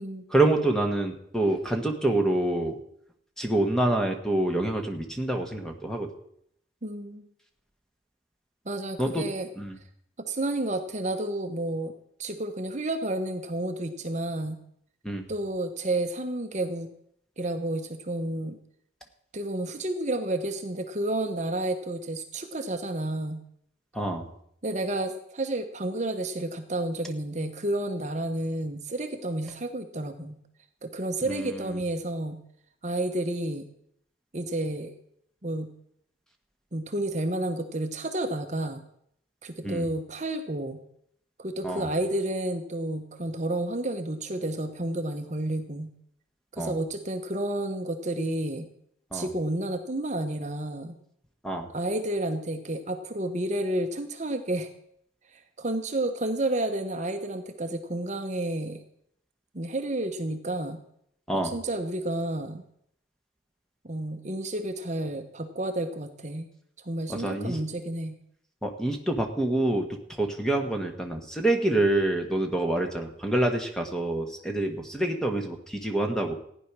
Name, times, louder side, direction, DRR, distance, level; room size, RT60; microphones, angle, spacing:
voice 1, 0.3-2.8 3.4-6.1 9.0-9.3 9.6-9.7 15.0-15.2 23.9-24.3 31.3-31.7 39.6-39.9 41.6-41.9 46.6-46.8 49.1-49.3 51.4-51.7 61.3-61.5 67.1-67.6 68.6-76.3, right 1 dB, 5° left, 3 dB, 1.4 m, -27 dB
voice 2, 6.8-7.3 8.7-9.5 10.2-11.9 12.2-14.6 15.3-16.9 17.4-18.6 19.3-23.4 24.6-30.4 30.8-32.4 32.8-33.7 34.3-34.9 35.4-35.7 36.7-38.8 39.4-40.8 41.4-45.9 46.5-48.7 49.1-51.0 51.7-54.7 55.3-58.8 59.5-60.8 61.3-62.6 63.8-66.5 66.8-68.2, right 1 dB, 35° right, 6 dB, 0.9 m, -31 dB
15.0 x 10.0 x 6.1 m, 0.71 s
head